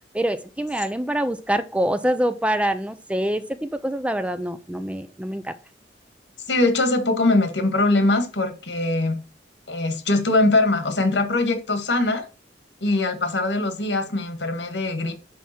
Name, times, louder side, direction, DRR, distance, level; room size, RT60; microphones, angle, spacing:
voice 1, 0.1-5.5, right 1 dB, 5° right, 0.5 m, -25 dB
voice 2, 6.5-9.2 9.7-12.2 12.8-15.1, left 2 dB, 85° left, 1.9 m, -22 dB
10.5 x 3.5 x 6.0 m
head